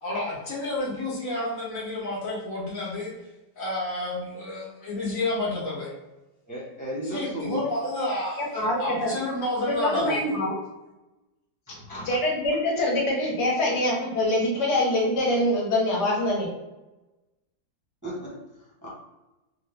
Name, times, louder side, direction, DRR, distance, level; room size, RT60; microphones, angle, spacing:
voice 1, 0.0-3.1 3.6-5.9 7.1-10.2, left 1 dB, 55° left, -5 dB, 1.7 m, -30 dB
voice 2, 6.5-7.6 11.7-12.2 18.0-18.9, right 1 dB, 15° right, -7 dB, 0.8 m, -35 dB
voice 3, 8.5-9.1 9.6-10.5 12.1-16.5, left 1 dB, 80° left, -3 dB, 1.7 m, -24 dB
3.7 x 2.6 x 3.3 m, 1.0 s
omnidirectional pair, 1.7 m